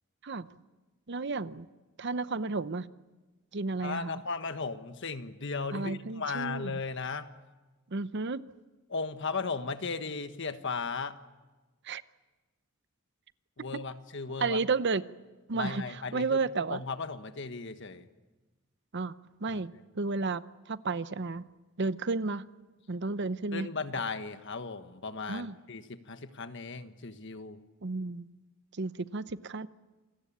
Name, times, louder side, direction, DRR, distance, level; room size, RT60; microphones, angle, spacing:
voice 1, 1.1-1.6 2.0-2.9 3.5-4.2 5.7-6.8 7.9-8.4 11.8-12.0 13.7-13.8 14.4-15.0 15.5-16.8 18.9-19.1 19.4-21.4 21.8-22.4 22.9-23.7 25.3-25.6 27.8-28.3 28.7-29.7, right 3 dB, 55° right, 0.8 m, -32 dB
voice 2, 3.8-7.3 8.9-11.2 13.6-14.6 15.5-18.1 19.5-19.6 23.5-27.6, left 4 dB, 60° left, 1.4 m, -36 dB
28.0 x 21.5 x 8.6 m
head